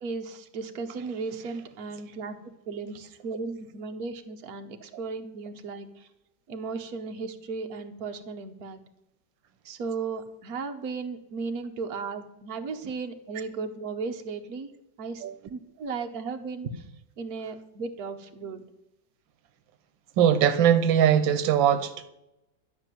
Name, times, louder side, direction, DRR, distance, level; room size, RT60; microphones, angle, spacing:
voice 1, 0.0-2.4 2.7-6.1 6.5-8.8 9.6-14.7 15.0-15.2 15.5-16.8 17.2-18.6, right 4 dB, 55° right, 1.6 m, -35 dB
voice 2, 20.2-21.9, right 9 dB, 85° right, 1.6 m, -21 dB
12.0 x 5.9 x 9.2 m
omnidirectional pair, 2.0 m